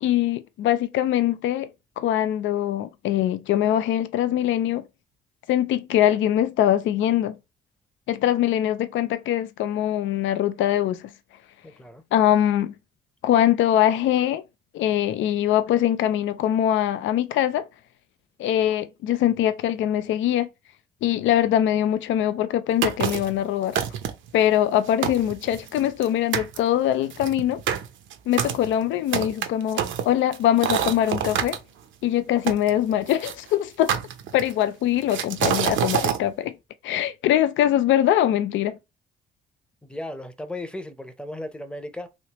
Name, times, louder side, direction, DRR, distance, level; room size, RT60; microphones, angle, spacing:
voice 1, 0.0-1.7 2.0-4.8 5.5-7.4 8.1-11.1 12.1-12.7 13.2-14.4 14.7-17.7 18.4-20.5 21.0-23.8 24.3-27.6 28.3-31.6 32.0-34.0 34.3-36.5 36.8-38.8, left 11 dB, 75° left, 0.4 m, -22 dB
voice 2, 11.6-12.0 39.8-42.1, left 1 dB, 5° left, 0.7 m, -36 dB
sound 1, 22.8-23.4 23.7-24.3 24.7-24.8 25.0-26.1 26.3-26.6 27.1-31.6 32.5-33.3 33.9-34.6 35.1-36.2, right 9 dB, 75° right, 0.6 m, -26 dB
3.2 x 2.9 x 2.9 m
cardioid pair, 90°, 20 cm